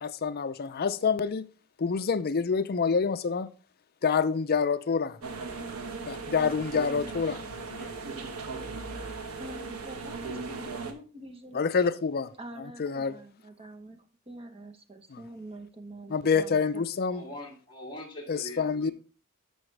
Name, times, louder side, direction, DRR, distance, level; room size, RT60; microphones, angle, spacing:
voice 1, 0.0-1.4 1.8-3.5 4.0-5.2 6.1-7.9 11.5-12.3 12.8-13.1 15.1-15.2 16.1-17.2 18.3-18.9, left 5 dB, 45° left, 0.5 m, -27 dB
sound 1, 5.2-10.9, right 4 dB, 90° right, 1.1 m, -38 dB
voice 2, 9.4-11.6 12.4-14.0 14.3-16.8, right 1 dB, 25° right, 1.0 m, -45 dB
voice 3, 17.1-18.9, left 1 dB, 25° left, 2.0 m, -42 dB
12.5 x 4.9 x 3.3 m
head